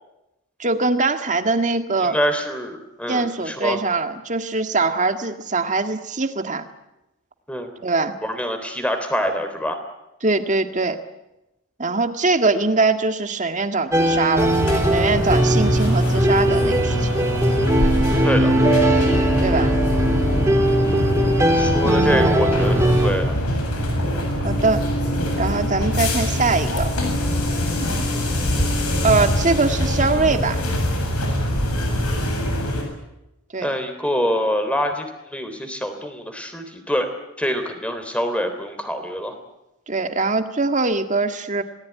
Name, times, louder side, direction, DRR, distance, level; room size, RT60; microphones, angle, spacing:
voice 1, 0.6-2.2 3.1-6.7 7.8-8.1 10.2-11.0 11.8-14.5 14.8-17.1 19.4-19.7 21.8-22.2 24.4-24.8 25.4-26.9 29.0-30.6 33.5-33.7 39.9-41.6, right 3 dB, 35° right, 7 dB, 1.8 m, -22 dB
voice 2, 2.0-3.8 7.5-7.7 8.2-9.8 18.2-18.5 21.5-23.4 33.6-37.1 37.4-39.3, equal, 5° left, 7 dB, 3.5 m, -25 dB
sound 1, 13.9-23.1, right 1 dB, 15° right, 2.8 m, -19 dB
sound 2, 14.4-32.8, left 1 dB, 85° left, 7.6 m, -24 dB
sound 3, 18.6-30.5, equal, 25° left, 6.8 m, -29 dB
27.5 x 19.0 x 9.5 m, 0.94 s
head